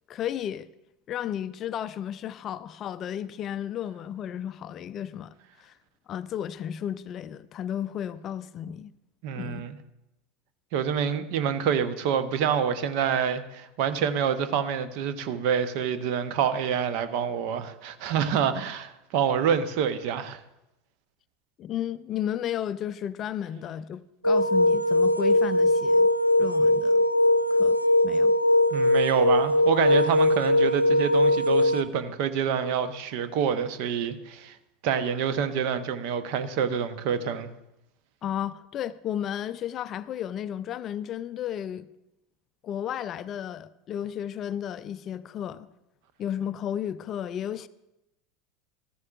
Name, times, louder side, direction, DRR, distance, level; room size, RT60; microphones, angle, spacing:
voice 1, 0.1-0.7 1.1-5.8 6.1-8.9 9.3-9.6 21.6-26.1 26.4-27.0 27.5-27.8 28.0-28.3 38.2-41.9 42.6-45.7 46.2-47.7, left 10 dB, 35° left, 0.4 m, -33 dB
voice 2, 9.2-9.8 10.7-20.4 28.7-34.6 34.8-37.5, right 7 dB, 50° right, 0.8 m, -27 dB
sound 1, 24.2-31.8, left 1 dB, 90° right, 0.4 m, -21 dB
14.0 x 14.0 x 2.4 m
figure-of-eight pair, 75°, 0 cm